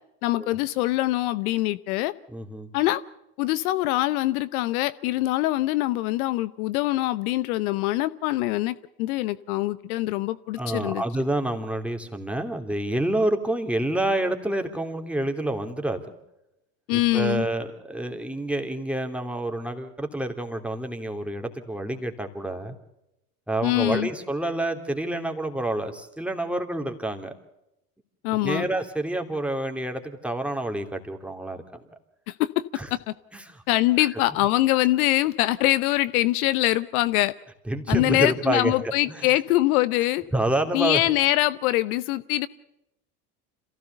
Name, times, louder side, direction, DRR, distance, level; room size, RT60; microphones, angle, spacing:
voice 1, 0.2-2.1 2.7-3.0 3.4-11.0 16.9-17.5 23.6-24.1 28.2-28.7 32.3-32.5 32.9-33.0 33.7-37.3 37.9-40.2 40.7-42.5, left 16 dB, 65° left, 16 dB, 0.9 m, -23 dB
voice 2, 2.3-2.7 10.6-16.2 16.9-22.7 23.5-27.3 28.3-31.8 32.7-32.9 33.3-33.6 34.0-34.2 37.7-39.3 40.3-41.0, right 1 dB, 5° right, 4 dB, 3.0 m, -28 dB
27.0 x 16.0 x 6.9 m, 0.87 s
hypercardioid pair, 80°, 47 cm